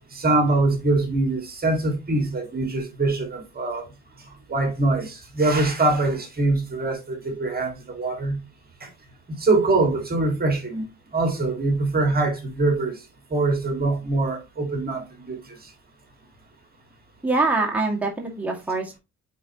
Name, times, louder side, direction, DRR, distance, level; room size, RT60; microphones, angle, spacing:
voice 1, 0.1-3.9 4.5-8.4 8.8-8.9 9.4-10.9 11.1-13.0 13.3-15.6, right 2 dB, 30° right, 2.2 m, -23 dB
voice 2, 17.2-19.0, right 3 dB, 5° right, 2.2 m, -24 dB
8.5 x 4.3 x 3.0 m
cardioid pair, 90°, 30 cm